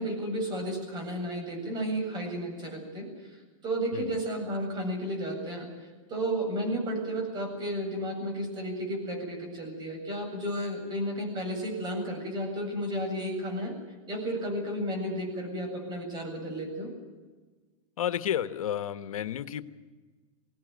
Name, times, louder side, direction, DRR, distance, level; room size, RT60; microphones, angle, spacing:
voice 1, 0.0-3.3 3.6-5.7 6.1-13.7 14.1-16.9, equal, 25° right, 3 dB, 7.9 m, -32 dB
voice 2, 18.0-19.6, left 10 dB, 85° left, 11 dB, 1.3 m, -31 dB
22.5 x 17.5 x 9.3 m, 1.4 s
hypercardioid pair, 140°, 18 cm